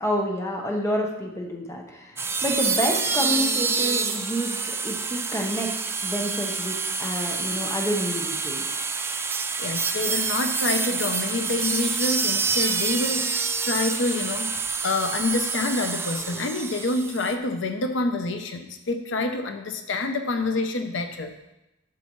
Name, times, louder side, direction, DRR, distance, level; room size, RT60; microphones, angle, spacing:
voice 1, 0.0-5.7 6.0-8.6, equal, 15° left, 0 dB, 1.0 m, -28 dB
sound 1, 2.2-17.3, right 5 dB, 10° right, 0.3 m, -27 dB
voice 2, 9.6-14.5 14.8-21.4, left 2 dB, 75° left, 7 dB, 0.7 m, -27 dB
11.5 x 6.7 x 3.1 m, 0.94 s
head